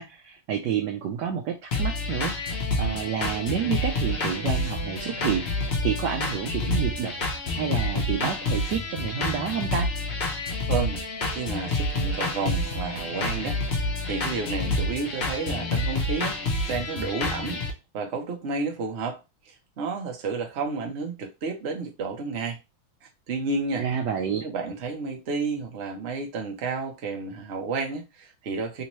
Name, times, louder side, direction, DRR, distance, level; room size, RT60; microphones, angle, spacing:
voice 1, 0.0-7.2 7.5-9.9 23.8-24.5, right 8 dB, 75° right, 1.0 m, -29 dB
sound 1, 1.7-17.7, left 2 dB, 65° left, 0.6 m, -28 dB
voice 2, 10.7-17.6 17.9-22.6 23.3-23.9 24.4-28.8, right 4 dB, 50° right, 0.8 m, -31 dB
3.5 x 2.8 x 3.0 m
omnidirectional pair, 2.2 m